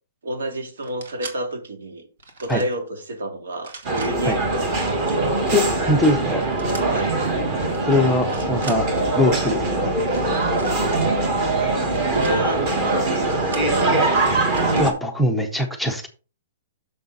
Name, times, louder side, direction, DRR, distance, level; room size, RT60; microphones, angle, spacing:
voice 1, 0.2-2.0 2.4-4.7 5.0-5.3 6.8-7.2 8.5-8.6 11.9-14.5, right 1 dB, 85° right, 2.4 m, -30 dB
sound 1, 0.8-1.4 2.2-2.8 3.5-4.1 6.6-6.8 7.6-7.8 8.1-8.8 10.0-10.8 11.7-12.3 13.2-13.7 14.5-15.0, right 4 dB, 60° right, 2.1 m, -39 dB
sound 2, 3.8-14.9, right 2 dB, 25° right, 1.5 m, -22 dB
voice 2, 5.5-6.5 7.9-8.8 9.2-9.9 14.8-16.1, left 1 dB, ahead, 0.6 m, -21 dB
6.6 x 6.5 x 4.0 m
hypercardioid pair, 175°, 0 cm